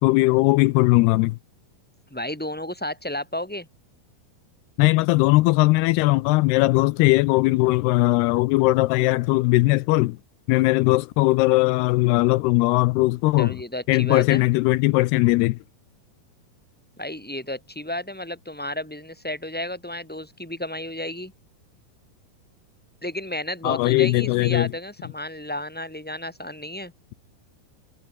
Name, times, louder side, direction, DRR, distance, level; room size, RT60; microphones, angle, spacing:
voice 1, 0.0-1.4 4.8-10.2 10.5-13.6 13.9-15.6 23.6-24.7, left 21 dB, 85° left, 2.6 m, -19 dB
voice 2, 2.1-3.7 13.4-14.4 17.0-21.3 23.0-26.9, left 1 dB, ahead, 6.0 m, -32 dB
omnidirectional pair, 4.7 m